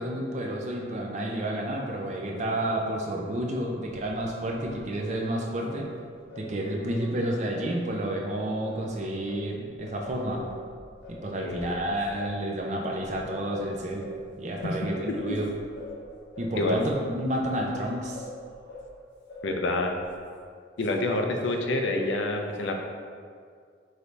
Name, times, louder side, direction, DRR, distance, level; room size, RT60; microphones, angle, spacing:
voice 1, 0.0-5.9 6.4-10.4 11.1-14.1 14.4-15.4 16.4-18.3, right 1 dB, 40° right, 0 dB, 0.5 m, -30 dB
Singing, 3.9-8.3 8.7-19.0 19.3-20.3, left 1 dB, 65° left, 1.2 m, -45 dB
voice 2, 19.4-19.9 20.8-22.8, left 2 dB, 80° left, 3 dB, 0.5 m, -27 dB
4.8 x 2.7 x 3.2 m, 2.1 s
head